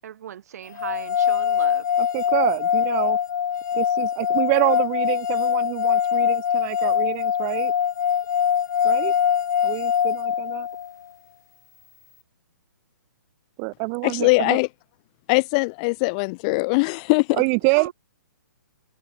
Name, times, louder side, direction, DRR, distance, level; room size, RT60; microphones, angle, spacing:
voice 1, 0.0-1.9 17.8-17.9, right 10 dB, 50° right, 7.1 m, -37 dB
sound 1, 0.8-10.9, left 8 dB, 60° left, 1.2 m, -23 dB
voice 2, 2.0-3.2 3.7-7.7 8.8-9.1 9.6-10.7 13.6-14.6 17.4-17.9, right 40 dB or more, 20° right, 0.9 m, -26 dB
voice 3, 14.0-14.7 15.3-17.4, left 30 dB, 20° left, 0.5 m, -21 dB
hypercardioid pair, 165°, 11 cm